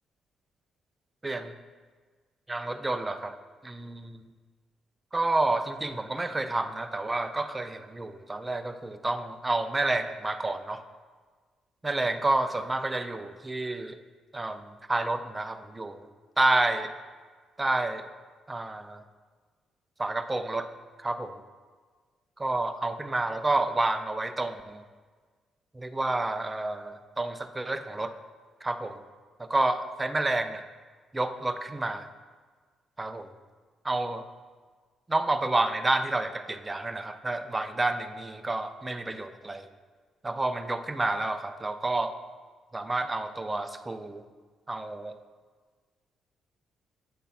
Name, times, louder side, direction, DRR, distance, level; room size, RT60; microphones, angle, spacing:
voice 1, 2.5-3.4 3.6-4.2 5.1-10.8 11.8-14.0 14.3-16.1 16.4-16.9 17.6-18.1 18.5-19.0 20.0-20.7 21.0-21.4 22.4-24.8 25.7-28.1 28.6-29.0 29.4-30.6 31.1-32.1 33.0-33.3 33.8-34.3 35.1-39.7 40.2-42.1 42.7-44.2 44.7-45.1, right 2 dB, 20° right, 8 dB, 0.5 m, -29 dB
8.6 x 5.3 x 4.3 m, 1.5 s
cardioid pair, 90°, 0 cm